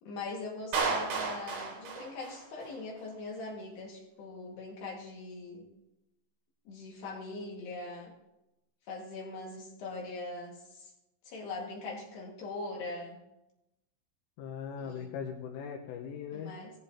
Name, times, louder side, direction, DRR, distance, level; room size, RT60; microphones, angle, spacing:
voice 1, 0.0-5.7 6.7-8.1 8.9-10.9 11.3-13.2 14.8-15.1 16.3-16.7, left 3 dB, 60° left, -1 dB, 3.7 m, -41 dB
Clapping, 0.7-2.8, right 4 dB, 75° right, 4.6 m, -33 dB
voice 2, 14.4-16.5, left 7 dB, 85° left, 1 dB, 3.7 m, -40 dB
19.0 x 14.5 x 2.9 m, 0.90 s
omnidirectional pair, 5.8 m